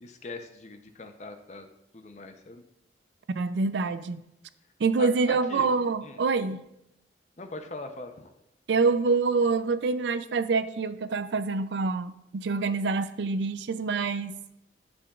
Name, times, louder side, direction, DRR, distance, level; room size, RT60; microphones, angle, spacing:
voice 1, 0.0-1.7 1.9-2.6 5.0-5.7 6.0-6.2 7.4-8.3, left 3 dB, 40° left, 6 dB, 0.6 m, -41 dB
voice 2, 3.4-4.2 4.8-6.6 8.7-14.4, right 4 dB, 70° right, 13 dB, 0.4 m, -26 dB
10.0 x 7.0 x 2.4 m, 0.85 s
head